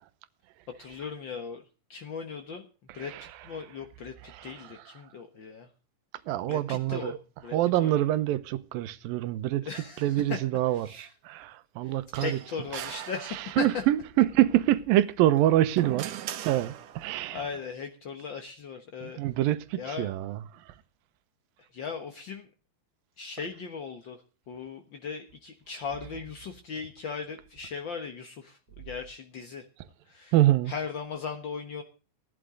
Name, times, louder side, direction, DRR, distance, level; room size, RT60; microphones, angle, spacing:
voice 1, 0.8-1.6 1.9-2.7 2.9-5.7 6.5-8.1 9.7-10.4 10.7-11.1 11.8-13.7 17.3-19.2 19.8-20.1 21.7-22.5 23.2-29.7 30.0-30.4 30.7-31.8, left 5 dB, 60° left, 1.2 m, -38 dB
voice 2, 6.3-7.2 7.5-9.7 10.0-12.4 13.6-16.2 16.5-17.4 19.0-20.4 30.3-30.7, right 14 dB, 85° right, 2.7 m, -25 dB
sound 1, 12.1-13.9 15.2-17.3, right 11 dB, 70° right, 2.5 m, -39 dB
16.5 x 11.5 x 3.8 m
omnidirectional pair, 4.0 m